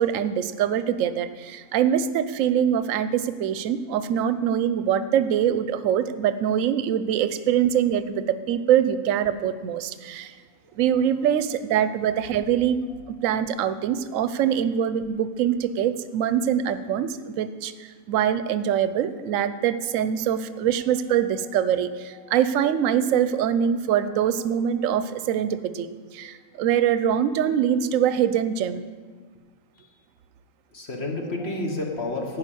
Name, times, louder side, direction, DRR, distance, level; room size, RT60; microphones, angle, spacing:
voice 1, 0.0-10.3 10.8-12.8 13.2-17.7 18.1-28.8, right 9 dB, 70° right, 13 dB, 0.9 m, -23 dB
voice 2, 10.5-11.0 11.9-12.0 12.9-13.4 19.4-19.6 19.9-21.8 22.1-22.7 23.6-25.0 26.2-26.6 29.7-29.9 30.7-32.4, left 2 dB, 50° left, 1 dB, 1.4 m, -36 dB
10.5 x 5.4 x 8.3 m, 1.5 s
omnidirectional pair, 1.5 m